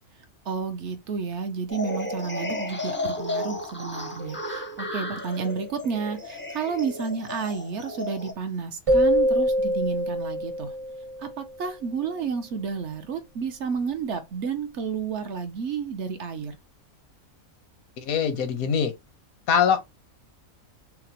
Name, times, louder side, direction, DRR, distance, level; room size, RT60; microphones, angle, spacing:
voice 1, 0.5-10.8 11.2-16.6, right 6 dB, 60° right, 0.9 m, -31 dB
sound 1, 1.7-8.3, left 2 dB, 15° left, 0.4 m, -33 dB
sound 2, 8.9-11.5, equal, 40° right, 0.5 m, -24 dB
voice 2, 18.0-18.9 19.5-19.8, left 7 dB, 85° left, 1.2 m, -23 dB
5.7 x 2.0 x 2.8 m
omnidirectional pair, 1.5 m